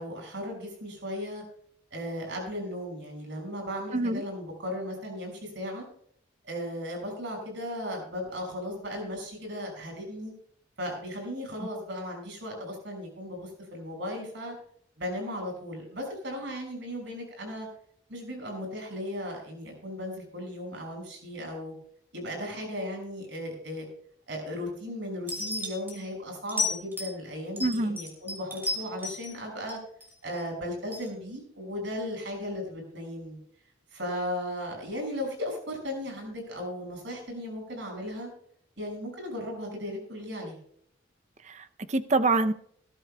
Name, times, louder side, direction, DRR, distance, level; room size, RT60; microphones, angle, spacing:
voice 1, 0.0-1.4 1.9-5.8 6.4-10.3 10.8-14.5 15.0-17.7 18.1-21.7 22.1-23.9 24.3-29.8 30.2-33.4 33.9-38.3 38.8-40.6, left 1 dB, 65° right, 6.1 m, -36 dB
sound 1, 25.3-25.9 26.5-27.2 27.6-29.3 29.7-30.4 30.9-31.1, left 2 dB, 10° right, 3.4 m, -33 dB
voice 2, 27.6-28.0 41.5-42.5, right 2 dB, 35° right, 0.6 m, -26 dB
19.5 x 13.5 x 2.3 m
head